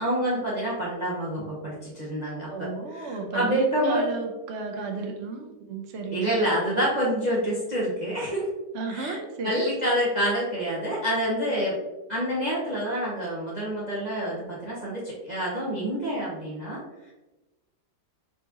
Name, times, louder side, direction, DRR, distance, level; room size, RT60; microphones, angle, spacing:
voice 1, 0.0-2.5 2.9-4.0 6.1-8.5 8.9-11.8 12.1-16.8, equal, 30° right, -6 dB, 0.9 m, -27 dB
voice 2, 2.5-6.4 8.7-9.7, right 4 dB, 60° right, 3 dB, 0.8 m, -33 dB
4.6 x 4.1 x 2.9 m, 1.1 s
omnidirectional pair, 1.8 m